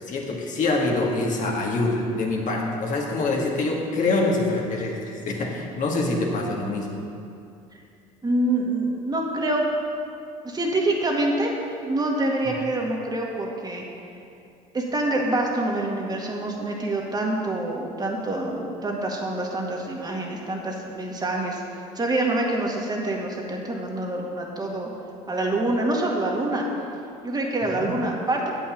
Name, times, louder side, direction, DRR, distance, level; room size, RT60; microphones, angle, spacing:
voice 1, 0.0-7.0 27.7-27.9, left 2 dB, 50° left, -1 dB, 1.8 m, -25 dB
voice 2, 8.2-9.6 10.4-11.5 11.8-13.8 14.7-21.6 22.0-24.9 25.3-26.7 27.2-28.5, right 2 dB, 25° right, -1 dB, 1.9 m, -26 dB
8.4 x 5.7 x 7.1 m, 2.6 s
supercardioid pair, 75°, 17 cm